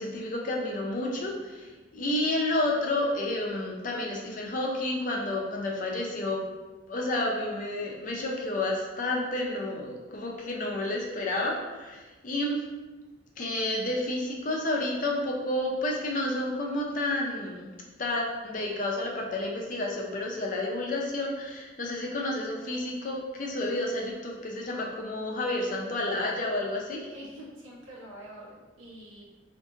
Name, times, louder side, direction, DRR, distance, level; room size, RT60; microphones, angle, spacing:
voice 1, 0.0-6.4 6.9-12.6 13.4-17.7 18.0-27.1, left 1 dB, 40° left, -1 dB, 0.5 m, -30 dB
voice 2, 27.1-29.2, equal, 85° right, -5 dB, 0.9 m, -45 dB
2.5 x 2.5 x 3.7 m, 1.2 s
head